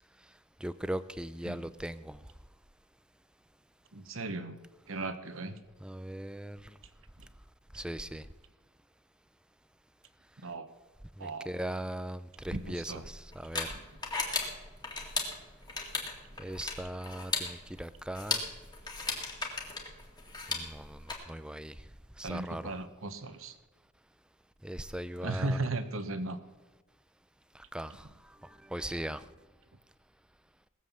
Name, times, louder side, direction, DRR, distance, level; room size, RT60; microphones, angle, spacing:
voice 1, 0.6-2.2 5.8-6.8 7.7-8.3 11.2-13.7 16.4-18.4 20.5-21.7 22.2-22.7 24.6-25.6 27.5-28.1 28.4-29.3, right 1 dB, 5° right, 14 dB, 0.4 m, -39 dB
voice 2, 3.9-4.6 4.9-5.6 10.4-10.7 11.2-11.6 12.5-13.0 13.7-13.8 22.2-23.5 25.2-26.4, right 2 dB, 65° right, 10 dB, 1.1 m, -36 dB
sound 1, 12.4-21.1, left 3 dB, 20° left, 2.1 m, -37 dB
18.5 x 7.6 x 7.3 m, 1.2 s
head